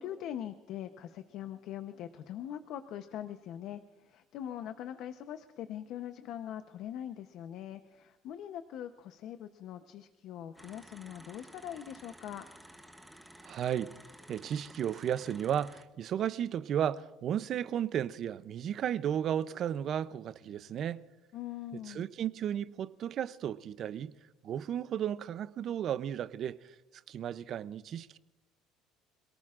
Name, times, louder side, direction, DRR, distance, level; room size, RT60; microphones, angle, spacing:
voice 1, 0.0-12.4 21.3-22.1, left 10 dB, 60° left, 0.8 m, -42 dB
sound 1, 10.6-15.8, right 1 dB, ahead, 0.9 m, -54 dB
voice 2, 13.4-13.9 14.3-21.0 21.7-24.1 24.4-26.8 27.1-28.2, right 9 dB, 45° right, 0.5 m, -34 dB
26.5 x 18.0 x 2.5 m
cardioid pair, 145°, 0 cm